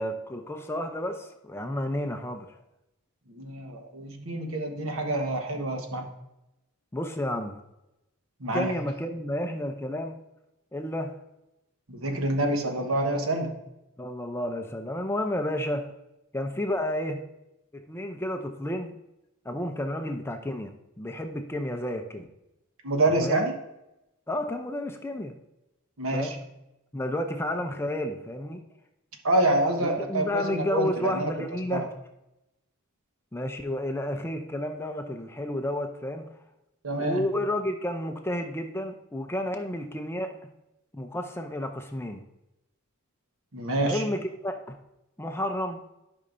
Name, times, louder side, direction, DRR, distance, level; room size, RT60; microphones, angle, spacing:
voice 1, 0.0-2.6 6.9-7.6 8.4-10.2 10.7-11.2 14.0-15.9 16.3-17.2 17.7-18.9 19.4-22.3 23.2-23.4 24.3-25.3 26.1-26.4 26.9-28.6 29.8-31.9 33.3-36.3 37.0-40.4 40.9-42.2 43.8-44.8 45.2-45.8, left 1 dB, 10° left, 5 dB, 0.5 m, -31 dB
voice 2, 3.3-6.1 8.4-8.7 11.9-13.6 22.8-23.5 26.0-26.3 29.2-31.3 31.7-31.9 36.8-37.2 43.5-44.0, right 1 dB, 65° right, 3 dB, 1.2 m, -27 dB
11.5 x 5.5 x 2.6 m, 0.90 s
head